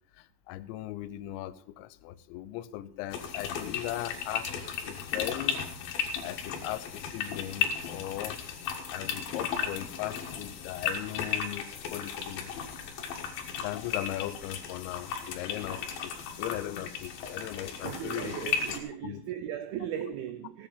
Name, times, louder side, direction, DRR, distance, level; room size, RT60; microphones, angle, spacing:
voice 1, 0.2-4.5 4.8-5.6 6.2-8.4 8.9-12.6 13.6-18.5 19.0-19.2, left 14 dB, 90° left, 3.0 m, -38 dB
sound 1, 3.1-18.8, left 7 dB, 65° left, 2.9 m, -35 dB
voice 2, 17.8-20.7, right 10 dB, 90° right, 2.1 m, -37 dB
17.0 x 8.2 x 5.5 m
omnidirectional pair, 5.1 m